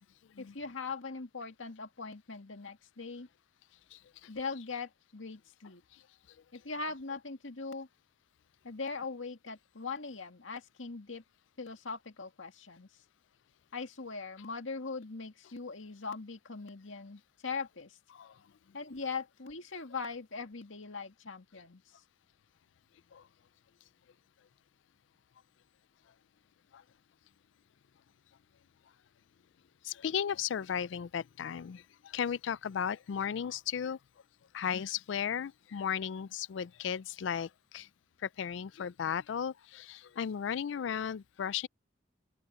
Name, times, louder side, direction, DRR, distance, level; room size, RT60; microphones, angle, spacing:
voice 1, 0.4-3.3 4.3-5.8 6.5-7.9 8.6-11.2 11.6-12.9 13.7-18.0 18.7-21.8, left 4 dB, 90° left, 2.1 m, -40 dB
voice 2, 29.8-31.8 32.1-34.0 34.5-37.9 38.2-41.7, left 8 dB, 70° left, 0.4 m, -35 dB
head